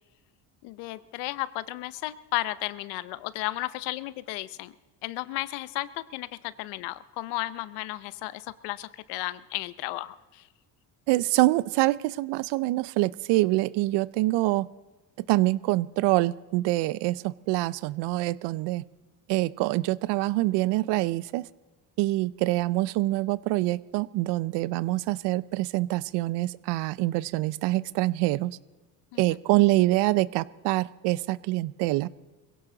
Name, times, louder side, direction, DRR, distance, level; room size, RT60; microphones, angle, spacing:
voice 1, 0.6-4.7 5.0-10.5 29.1-29.2, left 18 dB, 90° left, 17 dB, 0.7 m, -34 dB
voice 2, 11.1-14.7 15.3-18.8 19.3-21.5 22.0-28.6 29.2-32.1, right 19 dB, 85° right, 20 dB, 0.6 m, -25 dB
21.5 x 16.5 x 3.9 m, 1.2 s
cardioid pair, 100°, 40 cm